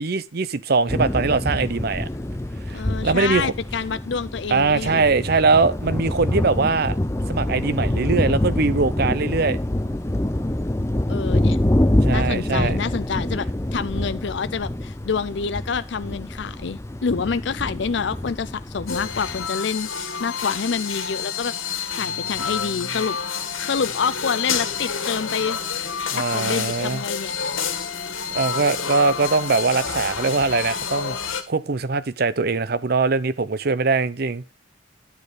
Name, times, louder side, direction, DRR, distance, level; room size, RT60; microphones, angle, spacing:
voice 1, 0.0-2.1 2.7-3.5 4.5-7.0 7.3-9.6 12.0-12.8 26.1-27.0 28.3-34.4, right 4 dB, 50° right, 0.6 m, -22 dB
sound 1, 0.9-19.5, left 1 dB, 15° left, 0.6 m, -25 dB
voice 2, 2.7-5.0 11.1-11.6 12.1-21.5 21.9-23.2 23.6-25.6 26.1-27.6, left 5 dB, 60° left, 0.5 m, -27 dB
sound 2, 18.9-31.4, left 6 dB, 80° left, 1.8 m, -28 dB
10.5 x 6.6 x 5.0 m
head